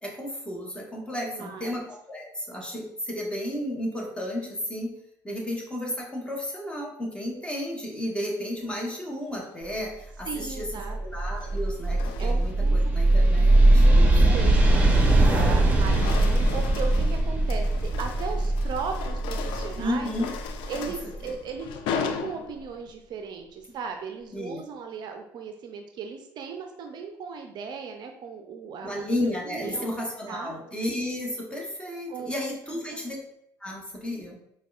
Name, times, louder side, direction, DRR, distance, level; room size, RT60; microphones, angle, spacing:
voice 1, 0.0-4.9 5.2-14.5 19.7-20.3 20.8-20.9 21.2-21.3 24.3-24.6 28.8-33.2 33.6-34.4, left 1 dB, 10° left, -1 dB, 1.1 m, -33 dB
voice 2, 1.2-1.8 10.3-11.0 12.2-13.0 13.7-20.1 20.7-28.9 29.5-29.9 30.3-30.5 32.1-32.3 32.9-33.0, right 5 dB, 50° right, 5 dB, 0.4 m, -37 dB
sound 1, 9.5-10.0 11.1-12.7 13.1-13.4 13.9-15.3 15.6-22.9, left 6 dB, 65° left, 0.3 m, -38 dB
sound 2, 10.4-21.1, right 2 dB, 15° right, 0.9 m, -21 dB
4.6 x 2.2 x 2.4 m, 0.76 s
hypercardioid pair, 70°, 9 cm